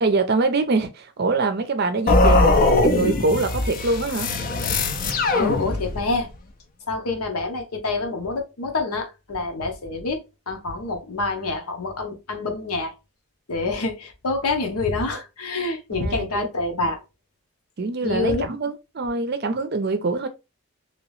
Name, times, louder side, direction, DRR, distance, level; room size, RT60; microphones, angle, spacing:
voice 1, 0.0-4.3 15.9-16.5 17.8-20.3, right 3 dB, 45° right, 0.5 m, -24 dB
sound 1, 2.1-6.2, left 2 dB, 40° left, 0.4 m, -20 dB
voice 2, 5.3-6.3 6.9-10.2 10.5-12.9 13.5-17.0 18.0-18.5, left 3 dB, 80° left, 0.9 m, -26 dB
2.9 x 2.9 x 3.1 m
head